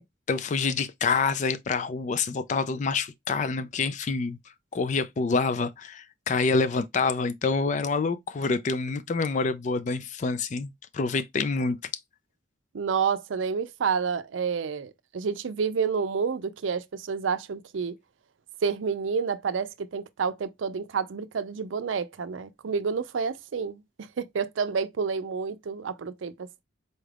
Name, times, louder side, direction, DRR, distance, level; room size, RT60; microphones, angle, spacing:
voice 1, 0.3-4.4 4.7-11.8, left 4 dB, 40° left, 0.3 m, -27 dB
voice 2, 12.7-17.9 18.6-23.8 24.2-26.6, right 6 dB, 90° right, 0.5 m, -29 dB
4.1 x 3.3 x 2.3 m
head